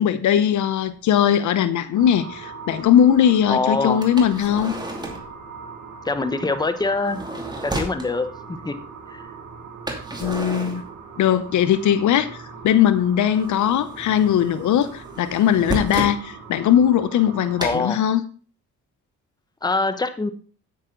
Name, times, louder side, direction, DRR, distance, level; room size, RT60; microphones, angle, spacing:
voice 1, 0.0-4.7 10.2-10.8 11.2-12.3 12.6-18.2, left 9 dB, 75° left, 13 dB, 0.9 m, -19 dB
sound 1, 0.9-1.0 1.7-1.8 4.0-5.4 6.8-8.1 9.9-11.5 11.8-12.7 12.9-16.2 17.6-17.8, right 1 dB, 15° right, 2.5 m, -32 dB
sound 2, 1.9-17.7, right 5 dB, 80° right, 2.2 m, -40 dB
voice 2, 3.5-4.0 6.0-7.2 7.6-8.7 9.1-9.3 17.6-18.0 19.6-20.3, left 3 dB, 15° left, 9 dB, 1.0 m, -24 dB
9.2 x 9.0 x 3.8 m, 0.39 s
cardioid pair, 90°, 30 cm